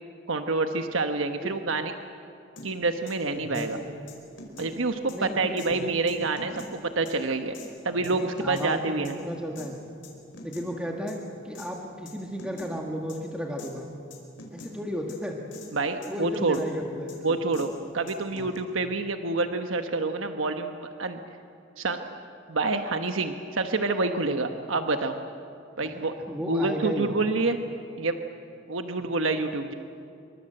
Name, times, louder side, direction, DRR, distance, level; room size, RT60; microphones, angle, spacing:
voice 1, 0.3-1.9 2.6-3.8 4.6-7.6 7.8-9.2 15.7-16.6 17.2-17.7 17.9-21.2 21.8-22.2 22.5-25.2 25.8-26.1 26.4-27.6 28.0-28.2 28.7-29.7, right 3 dB, 90° right, 6 dB, 1.2 m, -27 dB
sound 1, 2.6-2.7 3.1-3.2 3.5-3.7 4.1-4.7 5.1-5.2 5.6-5.7 6.1-6.7 7.0-7.1 7.5-7.7 8.0-8.7 9.0-9.1 9.5-9.7 10.0-10.7 11.1-11.2 11.5-11.7 12.1-12.2 12.4-12.7 13.1-13.2 13.6-13.7 14.1-14.7 15.1-15.2 15.5-15.7 16.0-16.7 17.1-17.2 17.5-17.7 18.1-18.6, left 3 dB, 75° left, 4.9 m, -44 dB
voice 2, 3.3-3.9 5.1-6.0 8.1-9.8 10.4-11.2 11.4-13.9 14.5-15.4 16.0-17.4 18.3-18.5 25.8-27.1 29.0-29.1, equal, 5° right, 0 dB, 1.8 m, -34 dB
26.5 x 23.5 x 7.8 m, 2.5 s
head